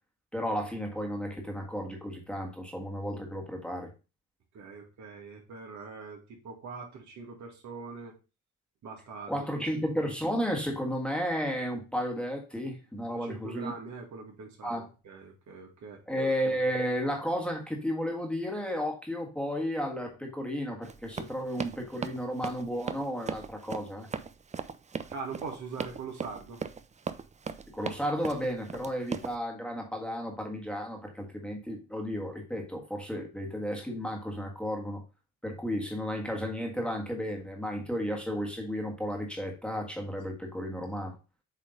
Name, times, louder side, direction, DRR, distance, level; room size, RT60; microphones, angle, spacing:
voice 1, 0.3-3.9 9.3-13.7 14.6-14.9 16.1-24.1 27.7-35.0 35.4-41.2, equal, 5° left, 0 dB, 1.6 m, -33 dB
voice 2, 4.5-8.1 8.8-9.7 13.1-16.0 25.1-26.6, right 4 dB, 70° right, 1 dB, 2.2 m, -42 dB
Run, 20.8-29.3, right 5 dB, 25° right, 0.5 m, -38 dB
7.9 x 3.3 x 3.8 m, 0.31 s
cardioid pair, 90°, 30 cm